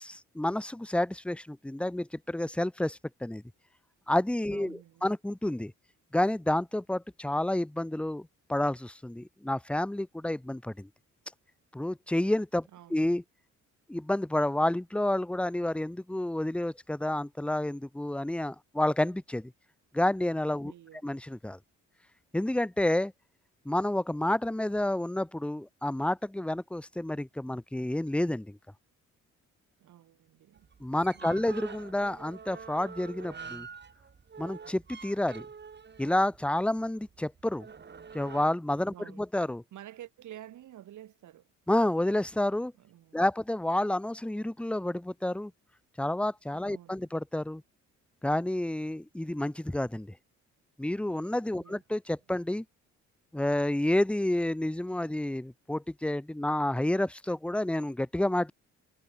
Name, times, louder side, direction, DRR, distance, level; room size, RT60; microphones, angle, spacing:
voice 1, 0.0-3.4 4.1-5.7 6.1-10.9 11.7-13.2 13.9-19.5 19.9-20.7 21.0-21.6 22.3-23.1 23.6-28.6 30.8-33.7 34.4-35.5 36.0-37.7 38.1-39.6 41.7-42.7 43.1-45.5 46.0-47.6 48.2-50.1 50.8-52.6 53.3-58.5, left 1 dB, 5° left, 1.0 m, -29 dB
voice 2, 4.5-5.0 12.7-13.1 20.6-21.1 29.8-30.7 31.1-31.4 38.9-39.2 39.7-41.5 42.8-43.3 46.6-47.0 51.6-51.8, right 12 dB, 75° right, 4.8 m, -50 dB
sound 1, 30.5-38.5, right 6 dB, 35° right, 2.5 m, -46 dB
cardioid pair, 90°, 30 cm